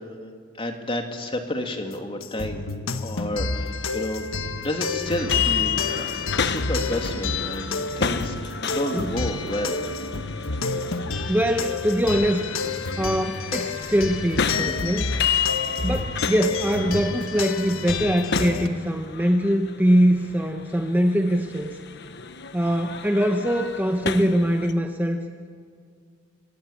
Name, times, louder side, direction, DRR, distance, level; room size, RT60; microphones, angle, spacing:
voice 1, 0.6-2.6 3.0-4.3 4.6-6.1 6.4-9.8, left 1 dB, 25° left, 4 dB, 2.7 m, -30 dB
sound 1, 2.2-18.7, left 4 dB, 85° left, 1.5 m, -30 dB
sound 2, 5.0-24.7, left 6 dB, 55° left, 1.1 m, -31 dB
voice 2, 11.3-12.4 13.0-15.1 15.8-21.8 22.5-25.2, equal, 10° right, 4 dB, 1.1 m, -22 dB
28.0 x 24.0 x 8.8 m, 2.1 s
head